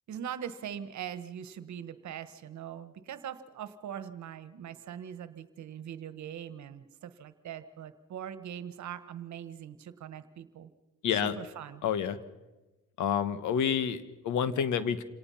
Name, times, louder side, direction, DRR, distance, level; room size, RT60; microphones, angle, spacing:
voice 1, 0.1-10.7 11.1-11.8, right 9 dB, 70° right, 13 dB, 1.4 m, -42 dB
voice 2, 11.8-12.2 13.0-15.0, left 8 dB, 75° left, 14 dB, 1.3 m, -29 dB
27.0 x 18.0 x 5.7 m, 1.1 s
cardioid pair, 90°, 30 cm